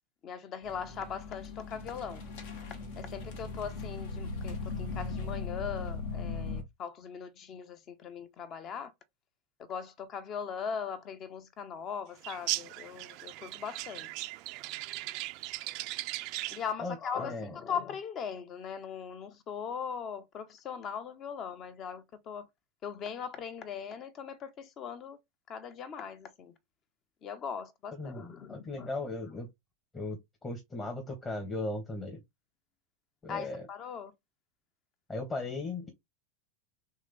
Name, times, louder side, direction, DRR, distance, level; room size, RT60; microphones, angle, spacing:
voice 1, 0.2-2.2 3.0-8.9 9.6-14.1 16.5-22.5 22.8-25.2 25.5-26.5 27.2-28.9 33.3-34.1, left 7 dB, 40° left, 0.9 m, -40 dB
sound 1, 0.6-6.6, left 3 dB, 65° left, 1.3 m, -38 dB
sound 2, 12.2-16.7, right 18 dB, 50° right, 0.4 m, -38 dB
voice 2, 16.8-17.5 28.0-29.5 29.9-32.2 33.2-33.7 35.1-35.9, left 2 dB, 20° left, 1.2 m, -37 dB
3.6 x 3.2 x 3.4 m
hypercardioid pair, 90°, 0 cm